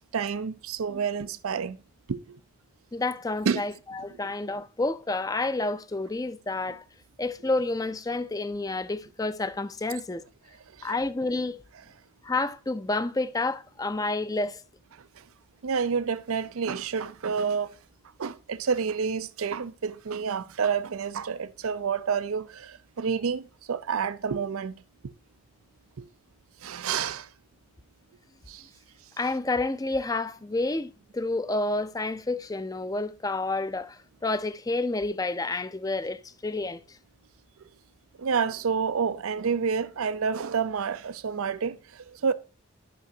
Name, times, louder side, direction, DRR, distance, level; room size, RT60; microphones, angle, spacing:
voice 1, 0.1-1.8 2.1-2.4 3.5-3.6 10.8-10.9 14.9-15.2 15.6-17.8 18.2-25.1 26.0-26.1 26.6-27.3 28.5-28.7 38.2-42.3, right 6 dB, 90° right, 0.5 m, -29 dB
voice 2, 2.9-6.8 7.2-10.2 10.8-11.6 12.2-14.6 29.2-36.8, left 2 dB, 15° left, 0.4 m, -29 dB
12.5 x 6.0 x 2.7 m
head